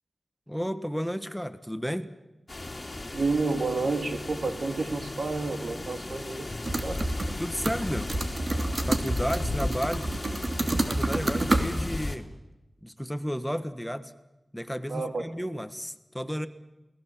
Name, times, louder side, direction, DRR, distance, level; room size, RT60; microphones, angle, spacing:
voice 1, 0.5-2.1 7.4-8.1 8.9-10.1 10.9-12.3 12.8-14.1 14.5-16.5, equal, 5° left, 10 dB, 1.5 m, -32 dB
sound 1, 2.5-12.2, left 2 dB, 35° left, 3.2 m, -36 dB
voice 2, 3.1-7.0 14.9-15.2, right 3 dB, 80° right, 6 dB, 2.7 m, -30 dB
sound 2, 6.6-7.4 7.6-11.7, right 2 dB, 55° right, 2.7 m, -28 dB
28.0 x 19.5 x 7.5 m, 1.0 s
cardioid pair, 50°, 0 cm